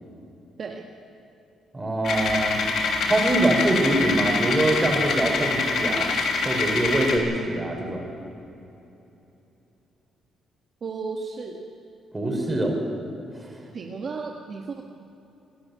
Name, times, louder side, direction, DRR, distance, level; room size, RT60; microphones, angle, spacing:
voice 1, 1.7-2.6 3.1-6.1 6.4-8.1 12.1-12.8 13.4-13.5, right 1 dB, 20° right, 1 dB, 5.5 m, -24 dB
sound 1, 2.0-7.2, left 4 dB, 65° left, 3.1 m, -25 dB
voice 2, 10.8-11.6 13.7-14.8, right 4 dB, 50° right, 0 dB, 1.7 m, -34 dB
25.0 x 11.5 x 9.8 m, 2.9 s
cardioid pair, 90°, 0 cm